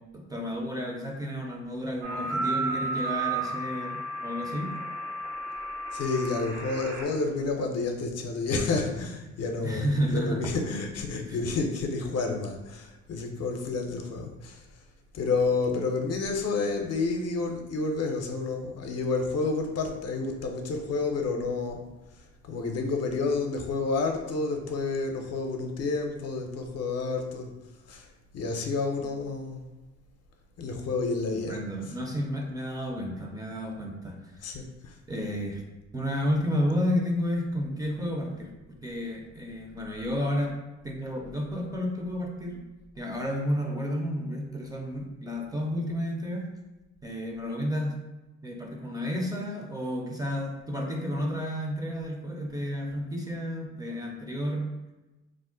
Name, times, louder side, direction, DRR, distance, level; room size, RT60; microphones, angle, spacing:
voice 1, 0.1-4.7 9.6-10.4 31.3-34.5 35.1-35.6 35.9-38.5 38.8-40.6 40.8-42.6 43.0-46.5 47.0-48.0 48.4-54.7, equal, 15° right, 0 dB, 0.4 m, -31 dB
sound 1, 2.0-7.0, right 2 dB, 80° right, 0.8 m, -33 dB
voice 2, 5.9-14.6 15.1-21.8 22.5-27.5 27.9-28.1 28.3-29.6 30.6-31.6 34.4-35.0, left 3 dB, 55° left, 3 dB, 0.5 m, -30 dB
2.5 x 2.1 x 3.7 m, 1.1 s
cardioid pair, 90°, 30 cm